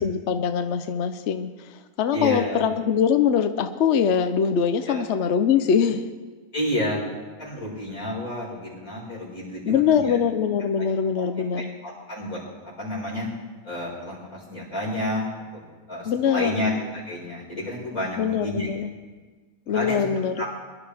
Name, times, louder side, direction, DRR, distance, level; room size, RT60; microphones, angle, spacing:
voice 1, 0.0-1.5 2.0-6.0 9.7-11.7 16.0-16.6 18.2-18.9 19.7-20.4, left 7 dB, 60° left, 9 dB, 0.9 m, -23 dB
voice 2, 2.1-2.6 4.8-5.0 6.5-7.0 7.4-10.2 11.1-11.3 11.8-12.4 12.8-13.3 13.6-15.6 15.9-16.8 17.1-18.7 19.7-20.0 20.4-20.5, left 1 dB, 75° left, -6 dB, 5.6 m, -30 dB
23.0 x 11.5 x 3.4 m, 1.4 s
omnidirectional pair, 1.5 m